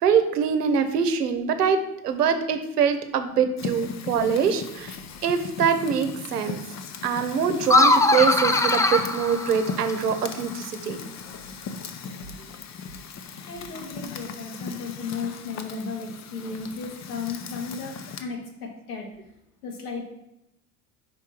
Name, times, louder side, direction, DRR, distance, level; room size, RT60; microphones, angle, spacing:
voice 1, 0.0-4.9 5.2-6.6 7.0-11.0, right 6 dB, 90° right, 9 dB, 0.9 m, -24 dB
Fire, 3.6-18.2, left 5 dB, 35° left, 0.8 m, -38 dB
sound 1, 7.6-10.1, left 2 dB, 5° left, 0.4 m, -21 dB
voice 2, 13.5-19.1 19.6-20.0, left 4 dB, 80° left, 1 dB, 1.9 m, -34 dB
5.2 x 4.5 x 4.5 m, 0.85 s
hypercardioid pair, 70°, 46 cm